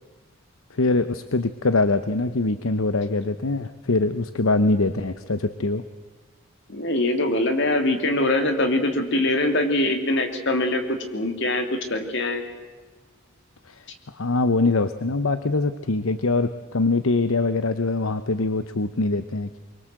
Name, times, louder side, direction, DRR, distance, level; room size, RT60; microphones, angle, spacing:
voice 1, 0.7-5.8 13.7-13.8 14.1-19.6, left 3 dB, 75° left, 11 dB, 0.9 m, -23 dB
voice 2, 6.7-12.4, left 1 dB, 55° left, 5 dB, 3.0 m, -23 dB
24.0 x 23.5 x 7.8 m, 1.4 s
head